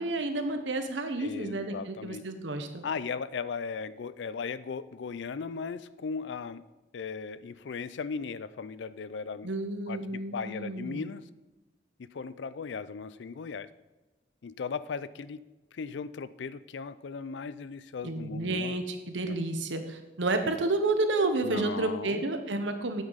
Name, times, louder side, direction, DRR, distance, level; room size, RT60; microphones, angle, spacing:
voice 1, 0.0-2.8 9.4-11.0 18.0-23.0, right 2 dB, 85° right, 7 dB, 1.0 m, -30 dB
voice 2, 1.2-2.3 2.8-6.6 6.9-9.5 9.9-11.2 12.0-13.7 14.4-15.4 15.7-18.7 19.2-19.4 21.4-22.2, left 5 dB, 80° left, 16 dB, 0.4 m, -37 dB
9.1 x 8.0 x 4.0 m, 1.1 s
head